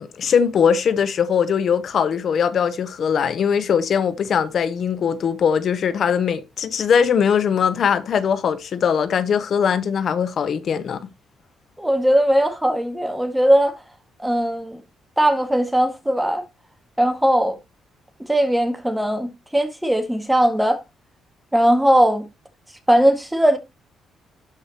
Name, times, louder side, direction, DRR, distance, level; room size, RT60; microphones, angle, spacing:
voice 1, 0.0-11.0, left 7 dB, 60° left, 0.8 m, -20 dB
voice 2, 11.8-13.7 14.2-14.8 15.2-16.4 17.0-17.6 18.3-20.8 21.5-22.2 22.9-23.6, equal, 5° right, 1.8 m, -19 dB
12.5 x 4.8 x 2.9 m
cardioid pair, 90°, 0 cm